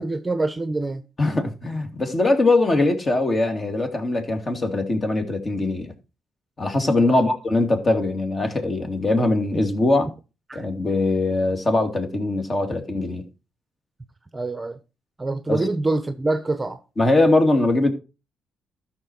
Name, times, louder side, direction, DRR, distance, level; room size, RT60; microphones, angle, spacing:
voice 1, 0.0-1.0 7.1-7.2 10.5-10.7 14.3-14.8 15.2-16.8, right 2 dB, 20° right, 0.9 m, -25 dB
voice 2, 1.2-5.9 6.6-10.1 10.5-13.2 15.5-15.6 17.0-17.9, left 2 dB, 30° left, 2.5 m, -21 dB
13.0 x 6.1 x 4.5 m
cardioid pair, 90°, 0 cm